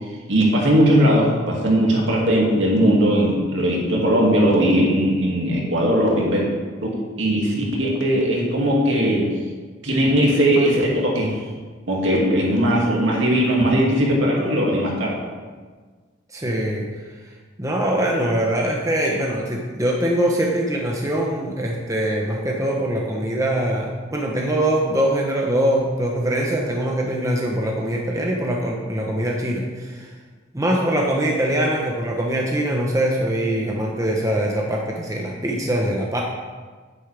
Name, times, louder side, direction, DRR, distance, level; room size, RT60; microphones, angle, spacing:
voice 1, 0.3-6.4 7.2-9.3 9.8-11.4 11.9-15.2, equal, 75° right, -3 dB, 2.3 m, -19 dB
voice 2, 16.3-16.9 17.6-30.1 30.5-36.2, right 1 dB, 15° right, -1 dB, 0.9 m, -23 dB
10.0 x 9.5 x 3.5 m, 1.5 s
head